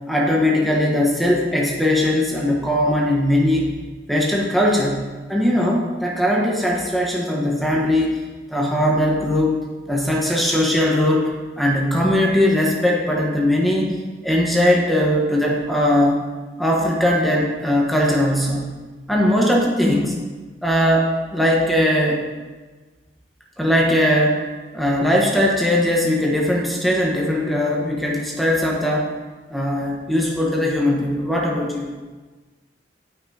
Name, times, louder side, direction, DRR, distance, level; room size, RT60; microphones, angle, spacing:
voice 1, 0.1-3.7 4.1-9.6 9.9-11.3 11.6-16.2 16.6-18.8 19.1-20.2 20.6-22.2 23.6-24.5 24.7-29.1 29.5-31.9, left 1 dB, ahead, -2 dB, 1.2 m, -19 dB
17.5 x 5.9 x 4.2 m, 1.3 s
head